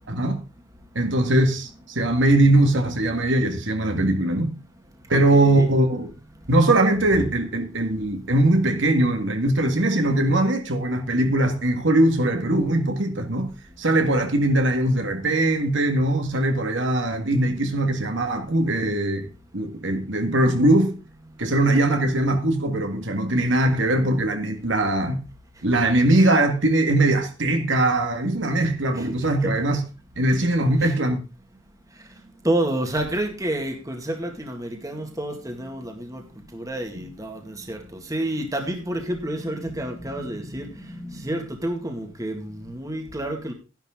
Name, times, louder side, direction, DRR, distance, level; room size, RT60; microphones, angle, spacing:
voice 1, 0.1-0.4 0.9-4.5 5.1-6.1 6.5-13.5 13.8-19.3 19.5-21.0 21.4-25.2 25.6-29.8 30.1-31.2, right 1 dB, 70° right, 1.9 m, -21 dB
voice 2, 5.1-5.7 29.0-29.1 29.4-29.5 30.8-30.9 32.4-36.2 36.5-43.5, right 1 dB, 15° right, 2.0 m, -29 dB
13.0 x 10.5 x 3.7 m
head